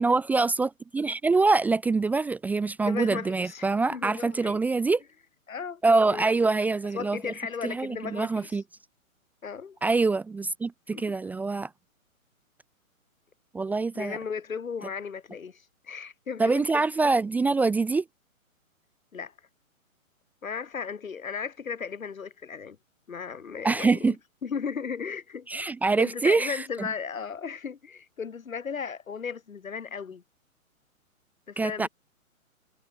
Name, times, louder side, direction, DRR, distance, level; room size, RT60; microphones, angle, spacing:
voice 1, 0.0-5.0 5.8-7.3 7.6-8.6 9.8-11.7 13.5-14.2 16.4-18.0 23.6-24.2 25.5-26.9 31.6-31.9, right 3 dB, 5° right, 0.9 m, -25 dB
voice 2, 2.8-4.6 5.5-5.8 6.1-6.3 6.9-8.6 9.4-9.8 10.9-11.0 13.9-16.7 19.1-19.3 20.4-22.8 23.1-24.2 24.4-25.7 26.0-30.2 31.5-31.9, left 6 dB, 70° left, 5.9 m, -35 dB
figure-of-eight pair, 140°, 42 cm